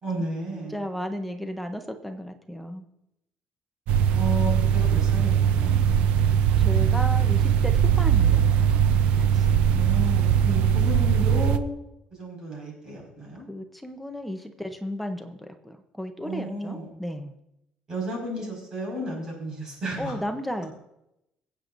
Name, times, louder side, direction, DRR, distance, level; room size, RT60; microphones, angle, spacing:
voice 1, 0.0-0.8 4.1-5.8 9.7-11.7 12.1-13.5 16.2-16.9 17.9-20.2, right 1 dB, 30° right, -1 dB, 5.2 m, -33 dB
voice 2, 0.7-2.8 6.2-9.0 9.3-9.5 13.5-17.3 20.0-20.7, equal, ahead, 5 dB, 0.7 m, -34 dB
sound 1, 3.9-11.6, right 9 dB, 70° right, 0.6 m, -21 dB
25.0 x 8.3 x 2.6 m, 0.86 s
cardioid pair, 175°, 2 cm